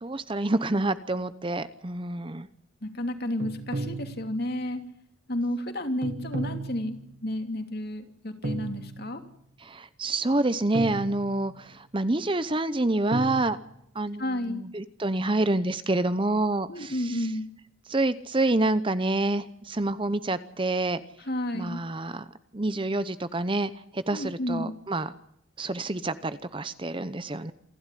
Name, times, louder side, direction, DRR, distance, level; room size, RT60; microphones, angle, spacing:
voice 1, 0.0-2.5 9.6-13.6 13.9-17.3 17.9-21.0 21.5-22.3 22.5-25.1 25.6-27.5, right 2 dB, 25° right, 13 dB, 0.8 m, -27 dB
voice 2, 2.8-4.8 5.3-7.0 7.2-9.2 14.2-14.7 16.7-17.5 21.2-21.8 24.1-24.7, left 1 dB, 50° left, 6 dB, 2.8 m, -31 dB
sound 1, 3.4-4.7 6.0-7.3 8.4-9.4 10.7-11.7 13.1-13.4, right 2 dB, 55° right, 2.0 m, -35 dB
28.0 x 12.0 x 9.9 m, 0.78 s
head